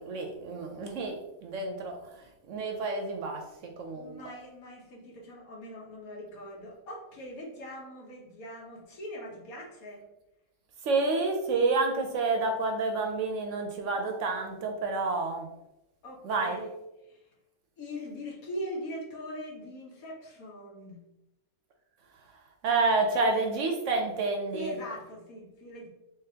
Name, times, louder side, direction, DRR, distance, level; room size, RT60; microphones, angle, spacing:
voice 1, 0.0-4.1 10.8-15.5 16.2-16.6 22.6-24.7, right 3 dB, 65° right, 3 dB, 0.8 m, -29 dB
voice 2, 3.9-10.0 16.0-16.7 17.0-17.2 17.8-21.0 24.5-25.9, equal, 75° left, -1 dB, 1.4 m, -41 dB
3.8 x 3.4 x 2.7 m, 0.92 s
omnidirectional pair, 1.5 m